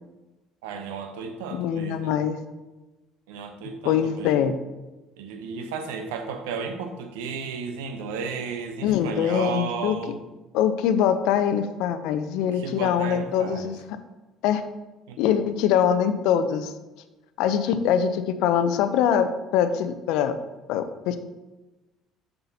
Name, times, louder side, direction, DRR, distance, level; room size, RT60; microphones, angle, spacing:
voice 1, 0.6-2.2 3.3-4.5 5.2-10.2 12.4-13.7 15.1-15.2, right 5 dB, 80° right, 6 dB, 0.8 m, -34 dB
voice 2, 1.5-2.4 3.8-4.6 8.8-10.0 10.5-13.8 14.4-14.6 15.2-16.7 17.4-20.4 20.7-21.2, left 9 dB, 70° left, 11 dB, 0.5 m, -23 dB
6.9 x 6.7 x 2.8 m, 1.1 s
hypercardioid pair, 60°, 0 cm